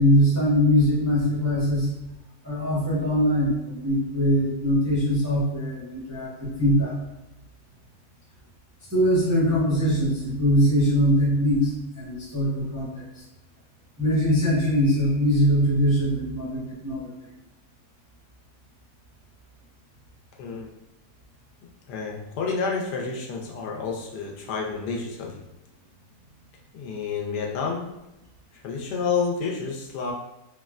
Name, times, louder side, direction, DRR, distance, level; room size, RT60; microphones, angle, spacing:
voice 1, 0.0-1.9 2.4-7.0 8.9-13.2 14.0-17.1, equal, 25° right, -8 dB, 0.4 m, -22 dB
voice 2, 20.4-20.7 21.9-25.4 26.7-27.9 28.6-30.1, left 5 dB, 85° left, 0 dB, 1.2 m, -29 dB
3.8 x 2.1 x 2.3 m, 0.94 s
omnidirectional pair, 1.7 m